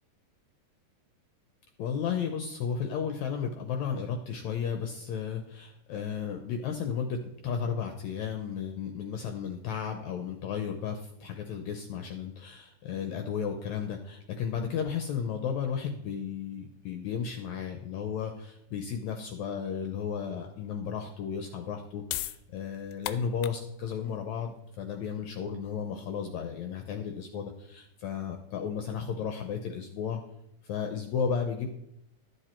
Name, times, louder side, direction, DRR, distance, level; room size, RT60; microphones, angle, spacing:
voice 1, 1.8-30.2 30.6-31.7, left 7 dB, 75° left, 5 dB, 1.9 m, -34 dB
sound 1, 21.9-28.4, left 14 dB, 90° left, 2.2 m, -42 dB
12.5 x 8.0 x 4.4 m, 0.82 s
omnidirectional pair, 3.7 m